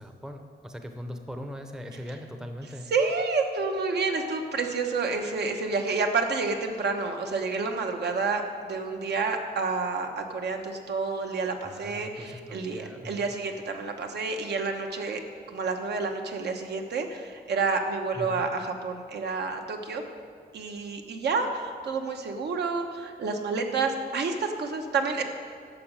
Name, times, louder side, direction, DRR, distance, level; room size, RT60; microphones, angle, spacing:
voice 1, 0.0-2.9 11.6-13.2 18.2-18.4, equal, 5° right, 5 dB, 0.6 m, -40 dB
voice 2, 2.9-15.2 15.5-20.0 20.5-25.2, right 4 dB, 75° right, 4 dB, 1.1 m, -29 dB
11.5 x 6.3 x 7.5 m, 2.1 s
wide cardioid pair, 175°, 18 cm